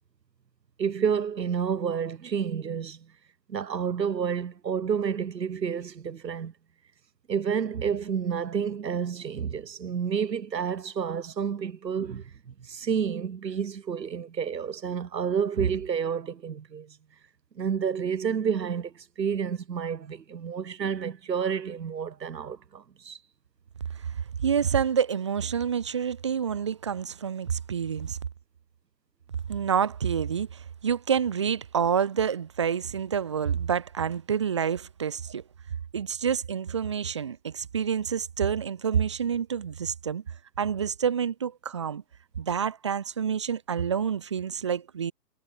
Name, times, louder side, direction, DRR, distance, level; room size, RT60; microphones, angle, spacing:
voice 1, 0.8-3.1 3.5-6.5 7.3-17.0 17.6-23.2, right 7 dB, 80° right, 3.0 m, -30 dB
voice 2, 24.4-28.2 29.5-35.4 35.9-40.2 40.6-42.0 42.4-45.1, right 7 dB, 20° right, 0.6 m, -28 dB
hypercardioid pair, 165°, 49 cm